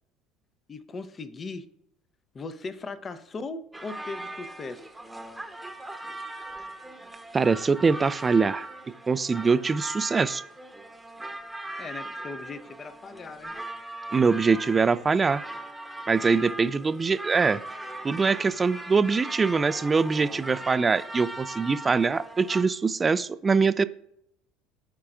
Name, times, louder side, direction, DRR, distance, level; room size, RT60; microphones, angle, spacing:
voice 1, 0.7-1.7 2.3-4.9 11.8-13.6, left 3 dB, 30° left, 12 dB, 0.7 m, -38 dB
sound 1, 3.7-22.6, right 1 dB, 5° right, 1.0 m, -39 dB
voice 2, 7.3-8.7 9.1-10.4 14.1-15.4 16.1-17.6 18.0-23.8, right 4 dB, 25° right, 15 dB, 0.4 m, -23 dB
14.0 x 4.7 x 2.4 m, 0.74 s
hypercardioid pair, 75°, 0 cm